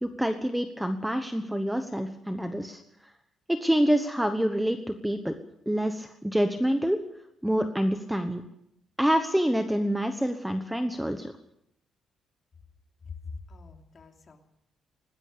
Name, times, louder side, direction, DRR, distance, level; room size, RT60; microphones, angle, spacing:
voice 1, 0.0-2.8 3.5-5.3 5.7-7.0 7.4-8.4 9.0-11.3, equal, 5° right, 7 dB, 1.1 m, -27 dB
voice 2, 13.0-14.4, left 4 dB, 30° left, 3 dB, 3.1 m, -43 dB
21.0 x 19.0 x 6.9 m, 0.78 s
cardioid pair, 160°, 0 cm